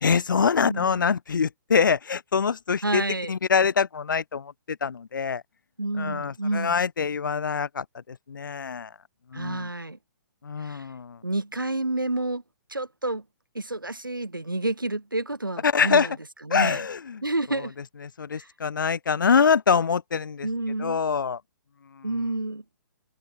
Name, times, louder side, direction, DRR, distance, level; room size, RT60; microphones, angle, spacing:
voice 1, 0.0-3.0 3.3-5.4 6.0-8.9 9.3-9.7 10.4-11.2 15.6-16.1 16.5-17.2 18.2-20.5 20.8-21.4 21.9-22.1, left 6 dB, 75° left, 0.4 m, -24 dB
voice 2, 0.6-1.0 2.8-3.3 5.8-6.8 9.3-10.0 10.6-10.9 11.2-12.4 12.7-13.2 13.5-16.2 16.4-16.8 17.2-17.7 18.4-18.5 20.4-21.0 22.0-22.6, right 2 dB, 85° right, 3.7 m, -29 dB
open air
figure-of-eight pair, 125°, 11 cm